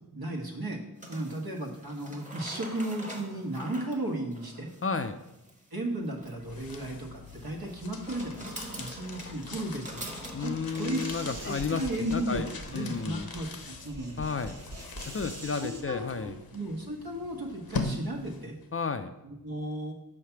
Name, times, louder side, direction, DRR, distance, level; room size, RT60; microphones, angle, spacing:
voice 1, 0.1-0.8 1.1-4.7 5.7-10.1 10.4-11.0 11.4-12.4 12.7-14.2 15.6-18.6 19.2-19.9, right 1 dB, 65° right, 1 dB, 1.3 m, -35 dB
sound 1, 1.0-13.4, right 1 dB, 20° right, 1.2 m, -46 dB
voice 2, 4.8-5.2 10.3-13.3 14.2-14.6 15.1-16.4 18.7-19.1, left 5 dB, 35° left, 9 dB, 0.4 m, -32 dB
sound 2, 6.2-18.7, left 3 dB, 65° left, 0.8 m, -42 dB
sound 3, 10.8-15.8, right 1 dB, 40° right, 1.2 m, -44 dB
5.6 x 3.2 x 5.7 m, 0.91 s
cardioid pair, 40°, 38 cm